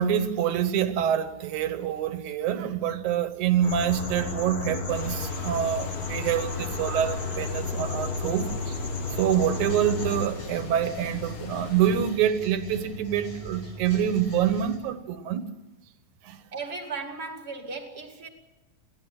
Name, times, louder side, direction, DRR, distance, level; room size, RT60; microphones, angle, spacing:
voice 1, 0.0-8.8 9.1-15.5 16.2-16.4, right 9 dB, 75° right, 2.5 m, -26 dB
sound 1, 3.6-10.3, left 3 dB, 35° left, 2.0 m, -32 dB
sound 2, 4.9-12.1, left 6 dB, 75° left, 0.8 m, -41 dB
sound 3, 9.1-14.8, left 1 dB, 50° left, 6.6 m, -42 dB
voice 2, 16.5-18.3, right 4 dB, 20° right, 2.0 m, -36 dB
21.5 x 15.0 x 9.0 m
omnidirectional pair, 3.6 m